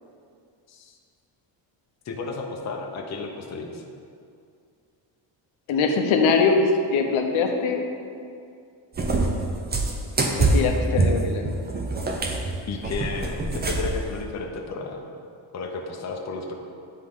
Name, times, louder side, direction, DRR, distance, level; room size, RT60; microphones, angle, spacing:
voice 1, 2.0-3.8 12.7-15.1 15.5-16.5, left 4 dB, 35° left, 1 dB, 0.7 m, -33 dB
voice 2, 5.7-7.9 10.4-11.5, left 4 dB, 75° left, 4 dB, 0.9 m, -22 dB
Cat, 9.0-14.1, right 2 dB, 20° right, 0.5 m, -24 dB
9.7 x 3.7 x 3.7 m, 2.4 s
cardioid pair, 125°, 48 cm